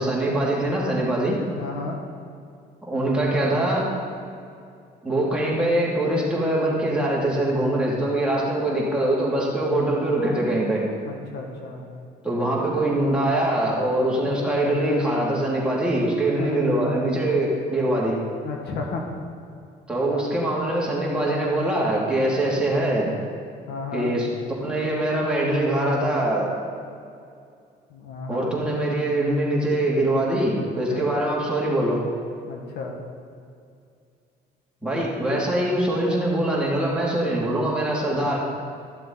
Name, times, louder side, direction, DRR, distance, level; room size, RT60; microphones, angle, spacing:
voice 1, 0.0-1.4 2.9-3.9 5.0-10.8 12.2-18.2 19.9-23.1 23.9-24.3 24.6-26.5 28.3-32.0 34.8-38.4, right 1 dB, 5° right, -5 dB, 2.7 m, -23 dB
voice 2, 1.5-2.0 11.0-11.8 16.3-16.6 18.4-19.1 20.0-20.3 22.2-22.3 23.7-24.1 27.9-28.5 30.9-31.1 32.5-33.0, left 4 dB, 75° left, 1 dB, 1.6 m, -33 dB
13.5 x 7.5 x 4.0 m, 2.4 s
cardioid pair, 110°, 17 cm